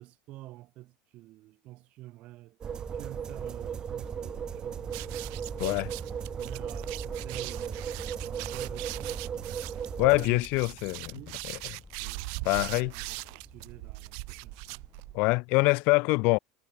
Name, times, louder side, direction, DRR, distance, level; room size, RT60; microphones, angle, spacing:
voice 1, 0.0-2.6 2.9-5.2 6.3-9.3 9.9-10.5 11.1-11.4 12.0-14.9, right 17 dB, 45° right, 3.9 m, -49 dB
sound 1, 2.6-10.3, right 8 dB, 25° right, 1.3 m, -36 dB
sound 2, 2.7-15.1, left 4 dB, 15° left, 2.2 m, -49 dB
sound 3, 4.9-15.3, right 40 dB or more, 60° right, 0.9 m, -41 dB
voice 2, 5.6-5.9 10.0-11.2 12.4-12.9 15.1-16.4, left 27 dB, 55° left, 0.8 m, -24 dB
supercardioid pair, 145°, 3 cm